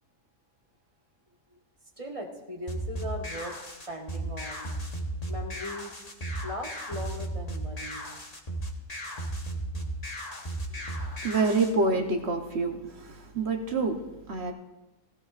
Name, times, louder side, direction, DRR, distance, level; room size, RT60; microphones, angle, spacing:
voice 1, 2.0-4.7 5.3-5.9 6.4-8.1, left 1 dB, 25° right, 1.4 m, -39 dB
sound 1, 2.7-11.7, right 1 dB, 30° left, 1.2 m, -35 dB
voice 2, 11.2-14.0 14.3-14.5, right 3 dB, 50° right, 1.2 m, -27 dB
17.0 x 16.0 x 2.5 m
omnidirectional pair, 1.5 m